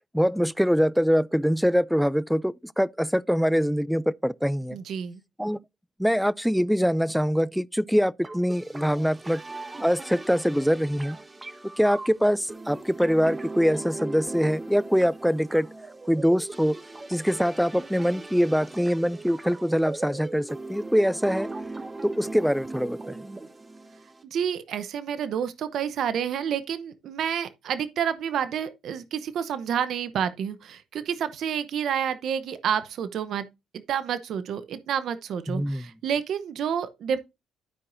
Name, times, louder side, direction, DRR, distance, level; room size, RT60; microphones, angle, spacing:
voice 1, 0.1-4.8 5.4-5.6 6.0-9.4 9.8-11.2 11.8-15.7 16.1-16.8 17.1-21.5 22.0-23.2 35.5-35.9, equal, ahead, 0.3 m, -24 dB
voice 2, 4.7-5.2 24.2-33.5 33.7-37.2, right 8 dB, 65° right, 0.8 m, -29 dB
sound 1, 8.2-24.2, right 2 dB, 25° right, 1.2 m, -39 dB
12.5 x 4.7 x 2.6 m
supercardioid pair, 70°, 0 cm